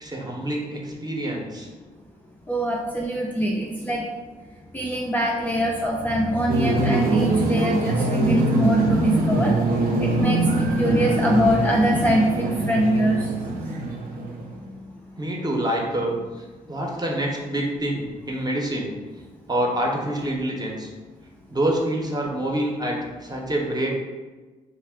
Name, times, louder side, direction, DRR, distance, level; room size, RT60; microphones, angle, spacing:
voice 1, 0.0-1.7 15.2-16.2 16.6-18.9 19.5-20.9 21.5-23.9, right 1 dB, 25° right, -1 dB, 0.7 m, -26 dB
voice 2, 2.5-4.1 4.7-9.6 10.0-13.3, equal, 10° left, -3 dB, 0.4 m, -23 dB
sound 1, 6.5-14.6, right 2 dB, 65° right, 0.5 m, -23 dB
2.4 x 2.1 x 3.5 m, 1.3 s
supercardioid pair, 50°, 16 cm